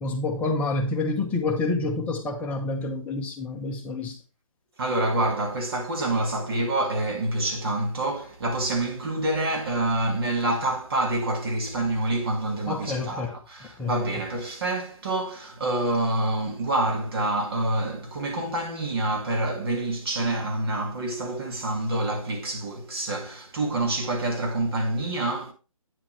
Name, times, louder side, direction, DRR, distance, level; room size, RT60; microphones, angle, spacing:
voice 1, 0.0-4.2 12.7-13.3 13.8-13.9, left 3 dB, 10° left, 0.9 m, -28 dB
voice 2, 4.8-25.5, right 2 dB, 45° right, 2.0 m, -27 dB
9.0 x 7.3 x 3.3 m
figure-of-eight pair, 150°, 18 cm